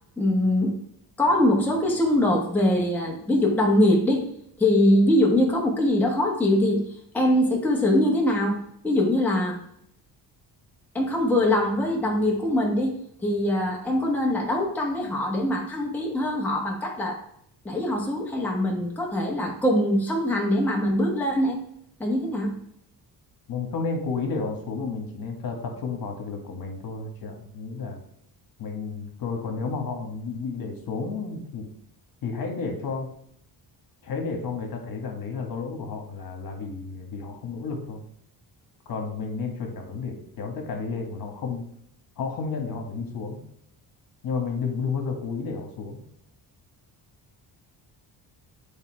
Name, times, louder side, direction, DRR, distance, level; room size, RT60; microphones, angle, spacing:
voice 1, 0.2-0.8 1.2-4.3 4.6-6.8 7.1-8.6 8.8-9.6 10.9-17.2 17.6-21.6 22.0-22.6, left 1 dB, 5° left, -2 dB, 1.1 m, -23 dB
voice 2, 23.5-28.0 28.6-31.7 32.2-33.1 34.0-38.0 38.8-41.7 42.2-43.4 44.2-46.0, left 4 dB, 55° left, 2 dB, 1.6 m, -32 dB
8.2 x 3.6 x 4.6 m, 0.69 s
cardioid pair, 150°, 42 cm